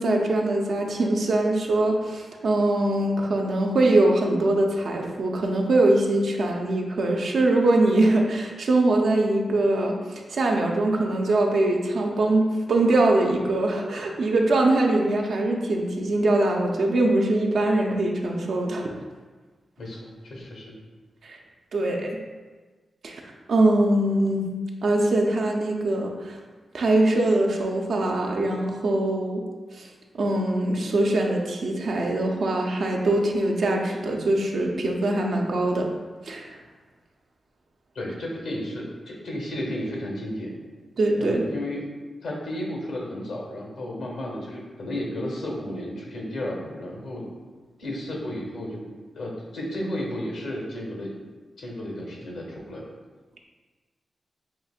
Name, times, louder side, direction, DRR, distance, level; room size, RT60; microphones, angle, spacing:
voice 1, 0.0-18.9 21.2-21.4 21.7-22.2 23.0-23.2 23.5-24.4 24.8-26.4 26.7-29.4 29.7-29.9 30.1-35.9 36.2-36.6 41.0-41.4, right 2 dB, 75° right, 1 dB, 0.5 m, -22 dB
voice 2, 19.8-20.8 37.9-40.6 41.2-41.8 42.2-47.2 47.8-48.8 49.1-51.1 51.6-52.8, left 1 dB, 85° left, -2 dB, 1.0 m, -33 dB
5.6 x 2.7 x 2.4 m, 1.3 s
cardioid pair, 50°, 0 cm